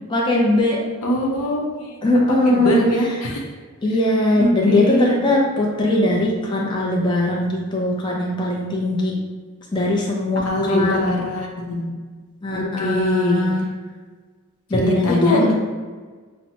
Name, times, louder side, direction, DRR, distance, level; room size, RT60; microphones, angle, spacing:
voice 1, 0.1-0.8 2.0-2.8 3.8-9.1 9.7-11.3 12.4-13.7 14.7-15.5, left 1 dB, 20° left, -3 dB, 0.5 m, -20 dB
voice 2, 1.0-2.0 2.4-3.4 4.3-5.1 10.4-11.9 12.5-13.5 14.7-15.5, left 1 dB, 90° left, -1 dB, 0.7 m, -22 dB
5.7 x 2.1 x 2.8 m, 1.5 s
head